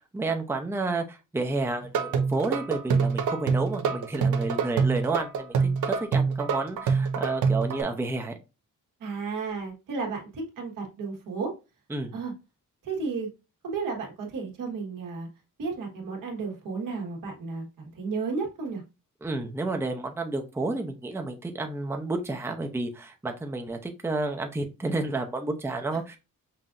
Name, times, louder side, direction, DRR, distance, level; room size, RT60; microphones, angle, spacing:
voice 1, 0.1-8.3 11.9-12.1 19.2-26.2, right 2 dB, 10° right, 4 dB, 0.6 m, -30 dB
sound 1, 1.8-7.8, right 5 dB, 70° right, 0.7 m, -25 dB
voice 2, 9.0-11.5 12.1-12.3 12.8-13.3 13.6-15.3 15.6-17.7 17.9-18.8, right 4 dB, 85° right, 1 dB, 1.5 m, -33 dB
5.7 x 2.6 x 2.4 m, 0.27 s
cardioid pair, 125°, 32 cm